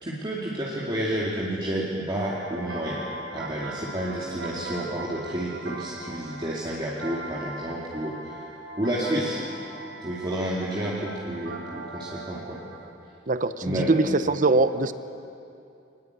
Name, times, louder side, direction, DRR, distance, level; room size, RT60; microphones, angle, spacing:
voice 1, 0.0-3.1 3.3-8.4 8.8-9.4 10.0-12.6 13.6-13.9, right 1 dB, 25° right, -5 dB, 2.5 m, -30 dB
sound 1, 2.2-12.9, right 2 dB, 70° right, 2.1 m, -40 dB
voice 2, 13.3-14.9, right 3 dB, 45° right, 12 dB, 0.8 m, -22 dB
23.5 x 20.5 x 8.2 m, 2.6 s
head